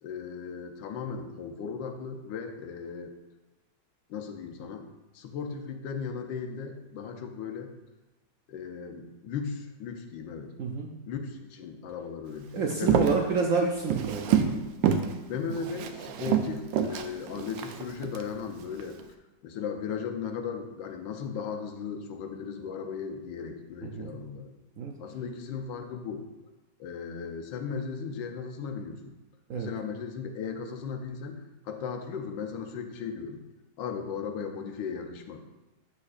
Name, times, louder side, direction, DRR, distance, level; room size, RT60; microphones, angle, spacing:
voice 1, 0.0-3.1 4.1-4.9 5.1-7.7 8.5-10.5 11.1-13.3 14.2-14.6 15.3-19.0 19.4-24.5 25.0-26.2 26.8-29.1 29.5-33.4 33.8-35.4, left 6 dB, 85° left, 4 dB, 1.5 m, -36 dB
voice 2, 12.5-14.2 23.8-24.1 24.8-24.9 29.5-29.7, right 4 dB, 70° right, 1 dB, 0.8 m, -28 dB
Walk footsteps, 12.7-14.6 14.8-15.1 15.5-18.2 18.7-19.0, right 8 dB, 90° right, 1.3 m, -27 dB
8.5 x 6.5 x 2.5 m, 1.1 s
omnidirectional pair, 1.9 m